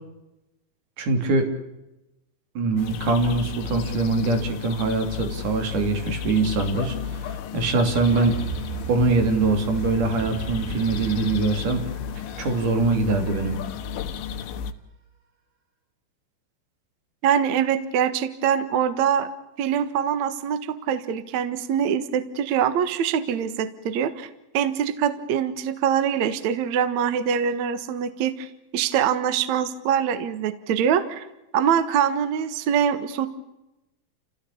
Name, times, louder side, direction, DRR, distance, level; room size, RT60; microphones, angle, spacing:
voice 1, 1.0-1.5 2.6-8.4 8.9-11.8 12.4-13.6, right 3 dB, 45° right, 6 dB, 4.2 m, -23 dB
sound 1, 2.8-14.7, left 7 dB, 75° left, 3.5 m, -33 dB
sound 2, 7.9-12.9, right 8 dB, 85° right, 0.6 m, -36 dB
voice 2, 17.2-19.3 19.6-24.3 24.5-28.5 28.7-31.3 31.5-33.3, right 8 dB, 65° right, 12 dB, 1.9 m, -24 dB
29.5 x 16.0 x 8.6 m, 0.94 s
omnidirectional pair, 5.5 m